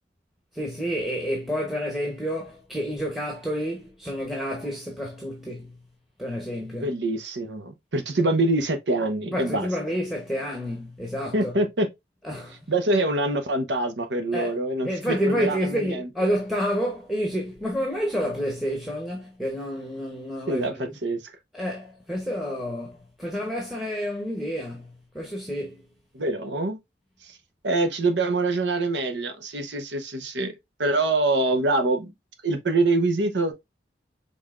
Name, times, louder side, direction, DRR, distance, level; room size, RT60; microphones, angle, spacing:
voice 1, 0.5-5.8 6.2-6.9 9.3-11.5 12.2-12.6 14.3-14.5 14.8-21.0 21.5-25.8, equal, ahead, 0.9 m, -29 dB
voice 2, 6.8-9.7 11.3-11.9 12.7-16.1 20.5-21.3 26.1-26.8 27.2-27.4 27.6-30.5 30.8-32.1 32.4-33.5, right 2 dB, 90° right, 0.9 m, -25 dB
5.4 x 3.5 x 2.5 m
head